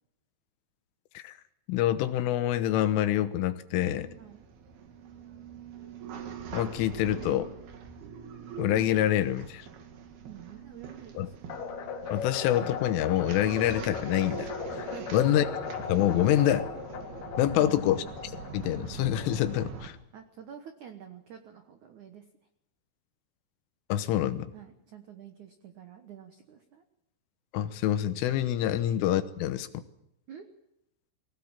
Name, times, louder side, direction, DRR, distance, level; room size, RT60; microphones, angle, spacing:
voice 1, 1.7-4.1 6.5-7.5 8.6-9.7 11.2-11.3 12.1-15.5 15.8-16.7 17.4-18.0 18.5-20.0 23.9-24.5 27.5-29.8, left 12 dB, 85° left, 11 dB, 3.6 m, -26 dB
sound 1, 3.7-19.9, right 6 dB, 60° right, 3.5 m, -43 dB
voice 2, 10.2-11.5 14.9-15.5 17.5-18.0 20.1-22.2 24.5-26.8 28.7-28.9 30.3-30.5, right 8 dB, 85° right, 6 dB, 1.7 m, -48 dB
sound 2, 11.5-19.8, left 6 dB, 60° left, 3.5 m, -38 dB
23.0 x 18.0 x 7.4 m, 0.81 s
omnidirectional pair, 5.6 m